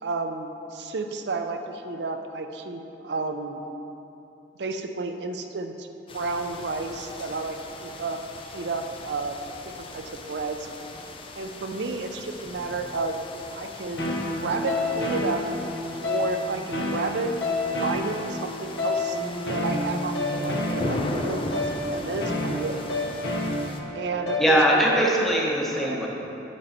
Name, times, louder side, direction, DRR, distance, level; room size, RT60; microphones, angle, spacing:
voice 1, 0.0-3.6 4.6-5.9 6.1-8.2 8.5-9.4 9.6-10.7 11.4-14.1 14.4-15.4 16.0-19.2 19.5-22.9 23.9-25.1 25.8-26.0, right 3 dB, 70° right, 6 dB, 0.5 m, -31 dB
sound 1, 6.1-23.8, left 2 dB, 30° left, 0.5 m, -39 dB
sound 2, 14.0-24.9, left 2 dB, 80° left, 1.0 m, -29 dB
voice 2, 24.4-26.1, equal, ahead, -3 dB, 0.8 m, -21 dB
8.0 x 5.5 x 4.1 m, 2.9 s
head